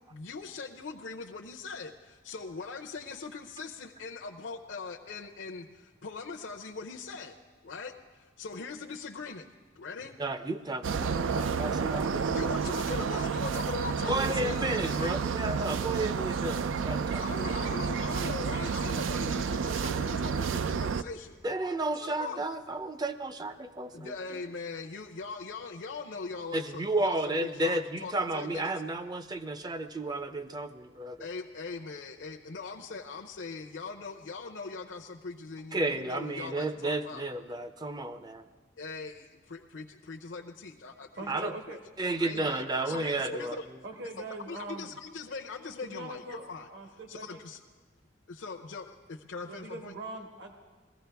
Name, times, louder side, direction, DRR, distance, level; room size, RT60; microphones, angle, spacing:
voice 1, 0.1-7.3 7.6-9.5 9.7-10.2 12.3-15.2 17.2-21.4 22.0-22.4 23.9-28.7 31.2-37.3 38.8-41.8 42.1-43.6 44.2-46.7 47.1-47.6 48.3-49.9, left 4 dB, 70° left, 0 dB, 0.6 m, -41 dB
voice 2, 10.2-12.2 14.1-17.2 21.4-24.1 26.5-31.2 35.7-38.4 41.3-41.5 42.0-43.6, right 2 dB, 20° right, 10 dB, 0.5 m, -32 dB
sound 1, 10.8-21.0, right 6 dB, 85° right, 0.4 m, -30 dB
voice 3, 41.1-41.8 42.4-42.5 43.8-45.0 45.8-47.4 49.5-50.5, right 2 dB, 60° right, 3 dB, 1.4 m, -42 dB
21.0 x 15.5 x 3.4 m, 1.4 s
head